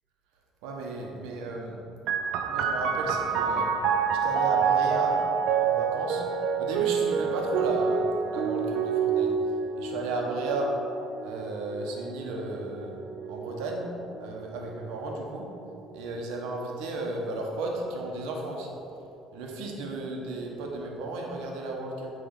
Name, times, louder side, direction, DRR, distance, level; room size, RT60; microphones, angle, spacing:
voice 1, 0.6-1.8 2.4-3.7 4.2-5.2 5.6-6.2 6.6-9.3 9.7-10.7 11.2-13.0 13.3-13.8 14.2-15.5 15.9-18.8 19.3-22.1, right 2 dB, 90° right, 0 dB, 1.1 m, -34 dB
sound 1, 2.1-15.3 16.2-16.9, right 6 dB, 70° right, 0.5 m, -28 dB
8.9 x 3.4 x 5.3 m, 2.9 s
cardioid pair, 120°, 0 cm